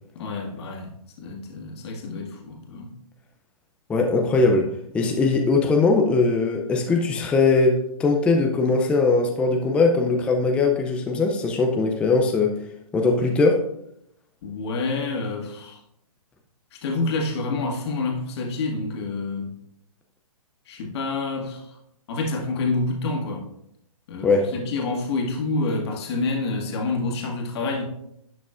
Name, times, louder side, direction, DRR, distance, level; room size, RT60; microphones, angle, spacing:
voice 1, 0.1-0.9 1.2-2.9 14.4-15.8 16.7-19.5 20.7-21.8 22.1-23.5 24.1-27.9, left 3 dB, 45° left, 1.8 m, -28 dB
voice 2, 3.9-4.7 4.9-12.5 12.9-13.6 24.2-24.5, left 3 dB, 5° left, 0.4 m, -20 dB
11.0 x 6.1 x 2.5 m
hypercardioid pair, 145°, 18 cm